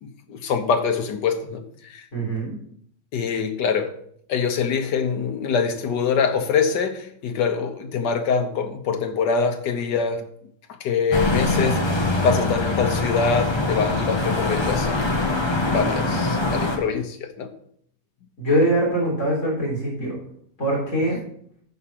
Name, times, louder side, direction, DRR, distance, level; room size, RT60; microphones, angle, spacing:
voice 1, 0.0-2.1 3.1-4.0 4.3-10.2 10.8-15.3 15.7-17.5, left 5 dB, 80° left, 1.7 m, -24 dB
voice 2, 2.1-2.5 18.4-20.2 20.6-21.2, right 1 dB, 45° left, 4.1 m, -22 dB
sound 1, 11.1-16.8, left 2 dB, 20° left, 1.1 m, -23 dB
12.5 x 4.9 x 5.9 m
omnidirectional pair, 1.8 m